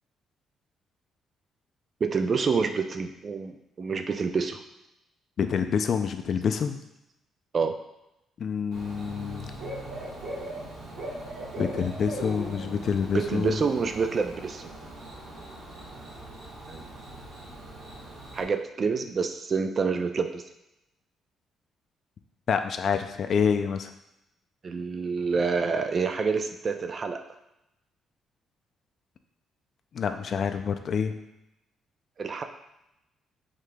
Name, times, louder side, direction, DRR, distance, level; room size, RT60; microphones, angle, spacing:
voice 1, 2.0-4.6 7.5-7.8 13.1-14.7 16.7-16.8 18.3-20.4 24.6-27.2 32.2-32.4, right 5 dB, 40° right, 6 dB, 0.3 m, -27 dB
voice 2, 5.4-6.8 8.4-9.5 11.6-13.6 22.5-23.9 29.9-31.1, left 6 dB, 50° left, 7 dB, 0.3 m, -27 dB
Bird / Cricket, 8.7-18.4, right 1 dB, 90° right, 1.4 m, -39 dB
4.9 x 3.6 x 2.2 m, 0.88 s
cardioid pair, 110°, 0 cm